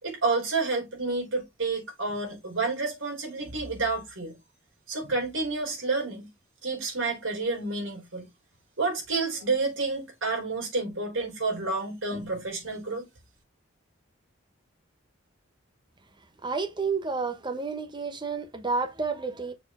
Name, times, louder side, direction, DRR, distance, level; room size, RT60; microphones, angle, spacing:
voice 1, 0.0-4.3 4.9-6.3 6.6-8.3 8.8-13.0, right 3 dB, 75° right, 3.8 m, -29 dB
voice 2, 16.4-19.5, right 4 dB, 20° right, 0.9 m, -30 dB
6.7 x 4.3 x 3.6 m
head